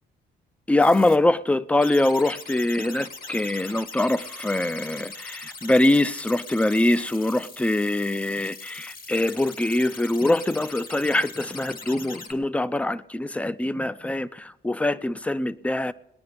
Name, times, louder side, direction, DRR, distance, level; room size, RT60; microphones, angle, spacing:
voice 1, 0.7-15.9, left 1 dB, 5° left, 0.4 m, -23 dB
sound 1, 0.8-1.2 1.8-12.3, left 4 dB, 50° left, 1.6 m, -41 dB
19.5 x 9.8 x 5.1 m
cardioid pair, 90°, 20 cm